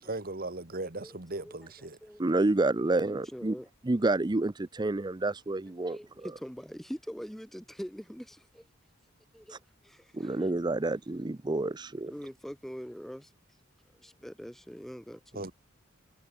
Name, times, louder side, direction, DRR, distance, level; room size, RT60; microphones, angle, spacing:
voice 1, 0.0-2.0 15.3-15.5, right 2 dB, 45° right, 2.0 m, -38 dB
voice 2, 1.0-1.5 2.0-2.2 2.9-3.7 5.9-8.7 9.3-10.4 12.1-13.3 13.9-15.4, equal, ahead, 1.3 m, -43 dB
voice 3, 2.2-3.6 3.8-6.0 10.1-12.1, right 2 dB, 20° right, 0.5 m, -28 dB
head